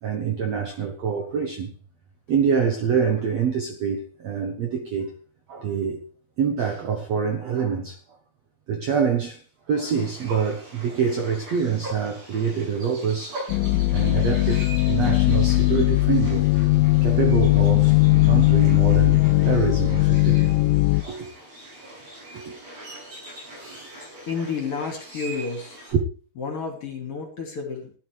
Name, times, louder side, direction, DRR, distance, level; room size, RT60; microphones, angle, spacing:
voice 1, 0.0-1.7 2.3-5.2 5.5-6.1 6.4-8.0 8.7-9.4 9.7-13.4 13.9-16.5 17.0-20.5 21.0-21.3 21.8-21.9 22.3-22.6 23.6-24.0, right 6 dB, 60° right, 1.8 m, -26 dB
sound 1, 9.8-25.9, right 1 dB, 40° right, 7.1 m, -42 dB
sound 2, 13.5-21.0, left 19 dB, 80° left, 2.2 m, -19 dB
voice 2, 24.3-25.8 26.4-27.9, left 5 dB, 40° left, 3.4 m, -30 dB
16.5 x 11.5 x 3.4 m
omnidirectional pair, 4.5 m